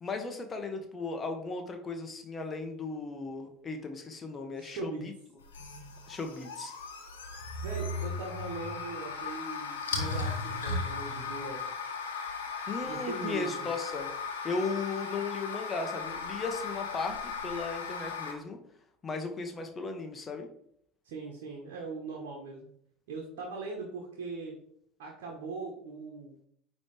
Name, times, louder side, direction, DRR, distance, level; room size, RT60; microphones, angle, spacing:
voice 1, 0.0-5.1 6.1-6.8 12.7-14.1 14.4-18.6 19.0-20.5, left 4 dB, 30° left, 5 dB, 1.0 m, -36 dB
voice 2, 4.6-5.0 7.6-11.6 12.8-13.7 21.0-22.7 23.1-24.5 25.0-26.5, right 3 dB, 70° right, 0 dB, 1.2 m, -40 dB
sound 1, 5.4-18.3, left 4 dB, 85° left, 1.1 m, -37 dB
9.4 x 3.2 x 3.3 m, 0.68 s
hypercardioid pair, 70°, 0 cm